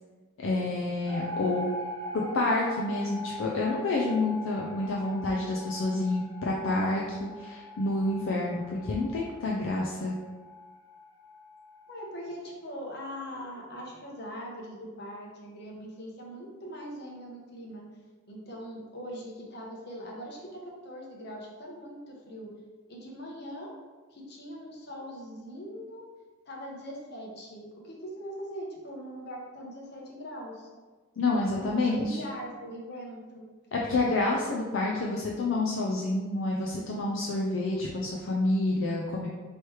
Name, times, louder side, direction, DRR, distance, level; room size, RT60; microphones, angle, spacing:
voice 1, 0.4-1.7 2.1-10.2 31.2-32.2 33.7-39.3, left 2 dB, 70° left, -3 dB, 0.4 m, -28 dB
sound 1, 1.1-12.2, left 1 dB, 15° left, 0.6 m, -42 dB
voice 2, 11.9-17.9 18.3-22.5 22.9-23.7 24.1-26.0 26.5-30.7 31.6-33.4, equal, 50° left, -2 dB, 0.9 m, -41 dB
3.2 x 3.1 x 4.5 m, 1.4 s
head